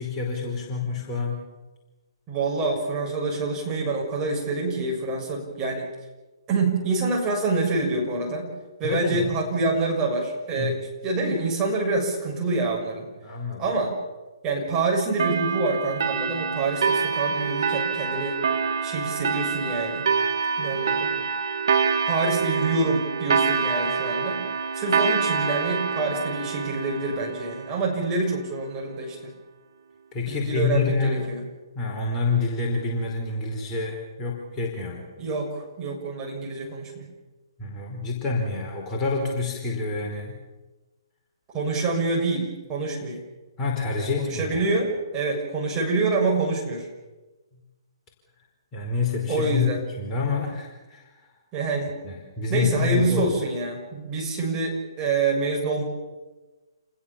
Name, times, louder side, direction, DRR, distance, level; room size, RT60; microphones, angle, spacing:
voice 1, 0.0-1.4 8.8-9.3 10.5-10.8 13.2-13.7 30.1-31.3 31.7-35.1 37.6-40.3 43.6-44.7 48.7-49.7 50.0-51.3 52.0-53.4, left 4 dB, 20° left, -1 dB, 4.8 m, -27 dB
voice 2, 2.3-5.9 6.5-8.5 8.8-10.8 11.0-13.1 13.6-13.9 14.4-18.4 18.8-20.0 20.6-21.1 22.1-24.4 24.7-29.2 30.3-31.4 35.2-37.1 41.5-43.2 44.0-46.9 49.3-49.8 51.5-51.9 52.5-55.8, right 3 dB, 20° right, -1 dB, 6.8 m, -26 dB
sound 1, 15.2-28.3, right 6 dB, 55° right, 2.7 m, -26 dB
29.0 x 20.5 x 7.3 m, 1.2 s
figure-of-eight pair, 125°, 3 cm